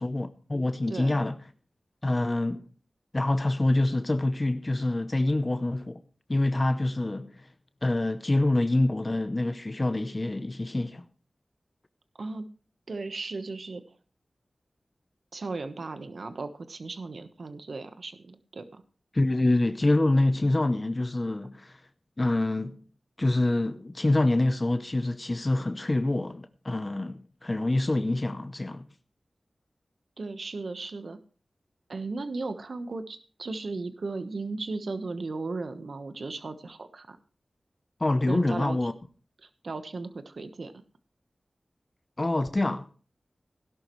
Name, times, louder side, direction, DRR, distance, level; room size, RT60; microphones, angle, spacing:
voice 1, 0.0-1.4 2.0-2.7 3.1-6.0 6.3-7.3 7.8-11.0 19.1-21.7 22.2-22.8 23.2-28.8 38.0-38.9 42.2-43.0, left 2 dB, 35° left, 0.7 m, -26 dB
voice 2, 0.9-1.2 12.2-12.5 12.9-13.8 15.3-18.8 30.2-31.2 31.9-37.2 38.3-38.9 39.4-40.7, right 3 dB, 75° right, 1.1 m, -36 dB
17.0 x 11.5 x 3.1 m
wide cardioid pair, 60°, 0 cm